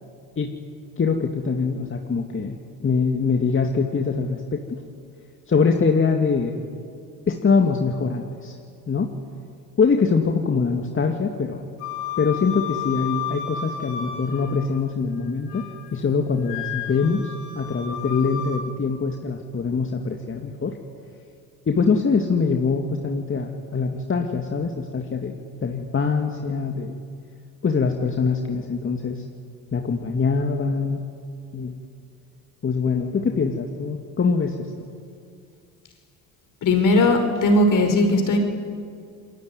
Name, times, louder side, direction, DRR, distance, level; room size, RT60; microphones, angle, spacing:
voice 1, 1.0-4.8 5.5-6.5 7.3-8.6 8.9-9.1 9.8-11.7 12.2-15.6 15.9-20.8 21.7-27.0 27.6-29.2 29.7-31.1 31.5-31.8 32.6-34.7, left 5 dB, 30° left, 3 dB, 2.3 m, -23 dB
Wind instrument woodwind instrument, 11.8-14.8 15.2-15.9 16.4-18.6, left 8 dB, 75° left, 5.8 m, -33 dB
voice 2, 36.6-38.4, left 2 dB, 50° left, 6 dB, 5.3 m, -18 dB
28.0 x 21.5 x 9.8 m, 2.4 s
supercardioid pair, 80°, 40 cm